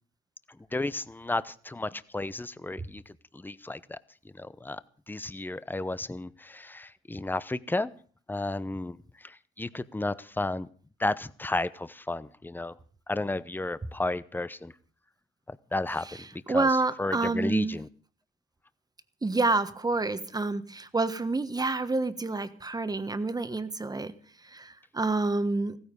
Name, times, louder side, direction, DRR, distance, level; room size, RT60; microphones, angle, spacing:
voice 1, 0.7-4.0 4.3-4.8 5.1-7.9 8.3-10.7 11.0-12.7 13.1-14.7 15.5-17.9, left 2 dB, 10° left, 16 dB, 0.8 m, -33 dB
voice 2, 16.5-17.8 19.2-24.1 24.4-25.8, right 3 dB, 20° right, 12 dB, 1.3 m, -28 dB
15.5 x 14.5 x 5.4 m, 0.43 s
cardioid pair, 90°, 20 cm